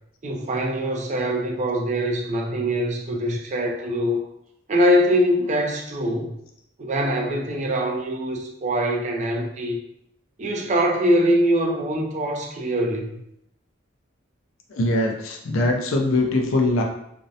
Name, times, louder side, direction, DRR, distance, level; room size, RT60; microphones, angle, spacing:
voice 1, 0.2-4.2 4.7-6.3 6.8-9.8 10.4-13.1, equal, 35° right, 1 dB, 0.4 m, -23 dB
voice 2, 14.7-16.8, left 2 dB, 85° left, 2 dB, 0.4 m, -22 dB
2.5 x 2.0 x 2.6 m, 0.76 s
head